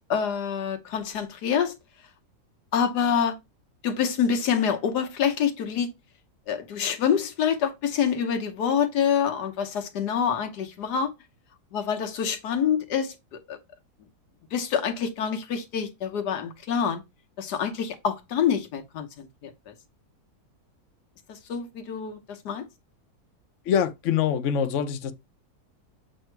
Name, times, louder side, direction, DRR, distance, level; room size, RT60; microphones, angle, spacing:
voice 1, 0.1-1.7 2.7-3.4 3.8-5.9 6.5-11.1 11.7-13.6 14.5-17.0 17.4-19.7 21.3-22.6, left 7 dB, 80° left, 1.5 m, -26 dB
voice 2, 23.7-25.1, left 8 dB, 60° left, 0.9 m, -24 dB
7.7 x 2.7 x 4.5 m
omnidirectional pair, 1.7 m